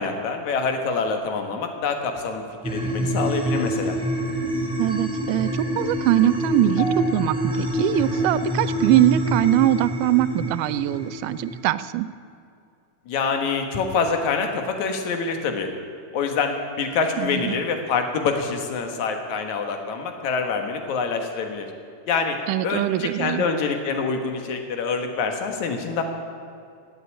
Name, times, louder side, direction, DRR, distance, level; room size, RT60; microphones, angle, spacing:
voice 1, 0.0-4.0 13.1-15.7 16.1-21.7 22.1-22.4 22.6-26.0, left 5 dB, 65° left, 5 dB, 2.7 m, -26 dB
sound 1, 2.6-11.6, equal, ahead, 1.6 m, -26 dB
voice 2, 4.8-12.1 17.2-17.6 22.5-23.5, right 14 dB, 85° right, 16 dB, 2.1 m, -22 dB
sound 2, 6.8-11.2 11.4-11.8 12.5-12.6, left 3 dB, 45° left, 2.6 m, -41 dB
16.0 x 8.1 x 10.0 m, 2.5 s
omnidirectional pair, 3.7 m